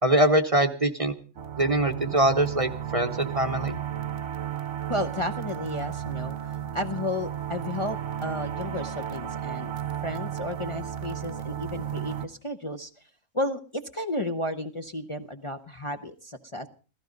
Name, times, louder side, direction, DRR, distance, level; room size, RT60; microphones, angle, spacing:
voice 1, 0.0-1.1 1.6-3.8, right 1 dB, 30° right, 7 dB, 1.0 m, -23 dB
sound 1, 1.4-12.3, right 10 dB, 70° right, 1.4 m, -34 dB
voice 2, 4.9-6.4 6.7-9.7 10.0-12.9 13.3-16.7, left 1 dB, 25° left, 6 dB, 0.8 m, -32 dB
16.0 x 15.0 x 5.2 m, 0.37 s
omnidirectional pair, 1.3 m